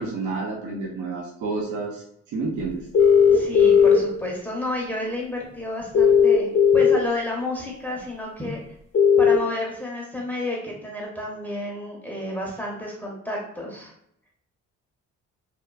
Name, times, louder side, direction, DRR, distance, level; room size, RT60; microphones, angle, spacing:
voice 1, 0.0-2.0 2.3-2.9, right 3 dB, 75° right, -2 dB, 0.6 m, -29 dB
sound 1, 2.9-4.0 5.9-6.9 8.9-9.3, left 7 dB, 45° left, 0.7 m, -15 dB
voice 2, 3.3-8.6 9.2-13.9, left 1 dB, 5° left, -2 dB, 0.6 m, -31 dB
2.9 x 2.0 x 2.3 m, 0.73 s
cardioid pair, 90°, 30 cm